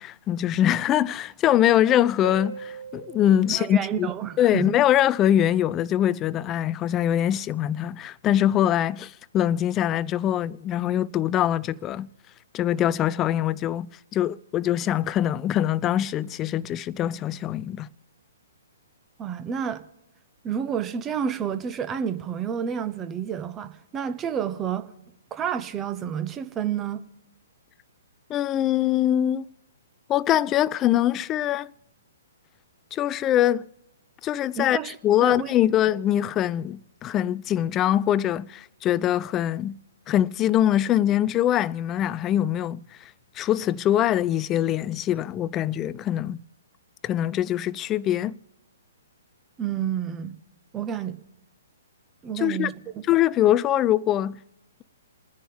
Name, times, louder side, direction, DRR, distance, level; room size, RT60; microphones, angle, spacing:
voice 1, 0.0-4.1 4.4-12.1 12.5-13.9 14.1-17.9 28.3-29.4 30.1-31.7 32.9-33.7 34.2-39.8 40.1-42.8 43.4-46.4 47.0-48.4 52.4-52.7 53.1-54.4, left 11 dB, 25° left, 0.4 m, -23 dB
Harp, 2.2-4.7 8.2-8.3, right 6 dB, 85° right, 6.3 m, -41 dB
voice 2, 3.6-4.8 19.2-19.8 20.4-24.9 25.3-27.0 34.6-35.0 35.2-35.5 49.6-50.3 50.7-51.2 52.2-52.7 53.0-53.1, right 8 dB, 20° right, 1.0 m, -29 dB
28.5 x 10.0 x 3.6 m
figure-of-eight pair, 125°, 0 cm